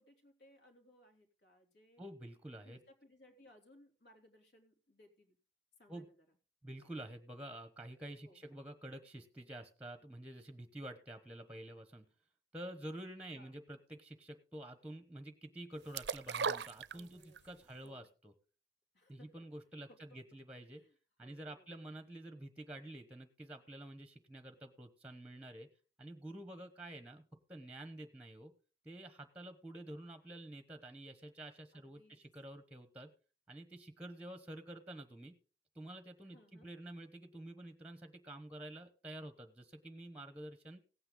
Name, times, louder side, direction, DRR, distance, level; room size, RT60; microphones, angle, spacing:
voice 1, 0.0-2.0 2.6-5.4 5.8-6.2 8.2-8.4 13.3-13.6 16.9-18.1 18.9-19.3 19.9-20.0 20.7-22.0 31.7-32.2 36.2-36.7, left 1 dB, 65° left, 3 dB, 3.3 m, -65 dB
voice 2, 2.0-2.8 5.9-6.1 6.6-12.0 12.5-18.3 19.1-20.8 21.2-25.7 26.0-27.2 27.5-28.5 28.8-33.1 33.5-35.3 35.7-40.8, right 1 dB, 5° right, 9 dB, 1.0 m, -49 dB
sound 1, 15.9-17.5 17.9-18.0, right 6 dB, 70° right, 0.5 m, -37 dB
17.0 x 8.9 x 3.8 m, 0.36 s
head